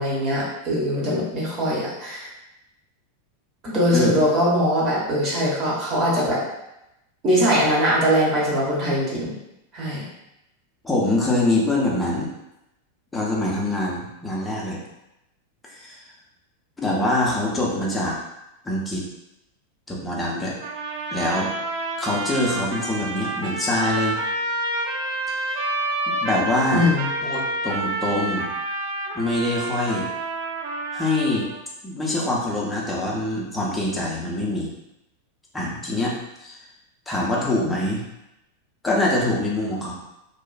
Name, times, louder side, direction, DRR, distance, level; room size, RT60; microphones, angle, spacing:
voice 1, 0.0-2.3 3.6-6.4 7.2-9.3 9.7-10.0 26.7-27.1, equal, 30° right, -6 dB, 1.0 m, -21 dB
voice 2, 10.8-12.3 13.1-14.8 15.7-16.0 16.8-18.2 18.6-19.0 19.9-20.5 21.1-21.5 22.0-24.2 25.3-25.6 26.1-26.9 27.2-28.5 29.1-30.0 30.9-31.5 31.8-34.7 35.5-36.6 37.1-38.0 38.8-39.9, left 1 dB, 10° left, -4 dB, 0.6 m, -24 dB
sound 1, 20.6-31.6, right 2 dB, 50° right, 0.4 m, -28 dB
2.7 x 2.3 x 2.2 m, 0.89 s
figure-of-eight pair, 90°, 0 cm